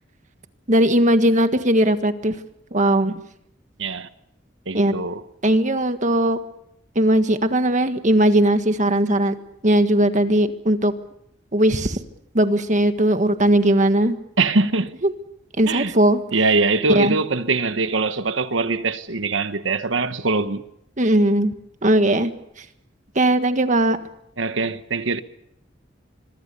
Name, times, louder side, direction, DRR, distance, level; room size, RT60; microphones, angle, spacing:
voice 1, 0.7-2.4 2.7-3.2 4.7-4.9 5.4-6.4 7.0-9.4 9.6-10.9 11.5-12.0 12.3-14.2 15.0-15.1 15.6-16.2 17.0-17.2 21.0-21.5 21.8-22.3 23.2-24.0, right 1 dB, 40° right, 1.6 m, -18 dB
voice 2, 4.7-5.2 14.4-14.9 15.7-15.9 16.3-20.6 24.4-25.2, right 3 dB, 80° right, 1.3 m, -22 dB
26.0 x 22.0 x 6.9 m
head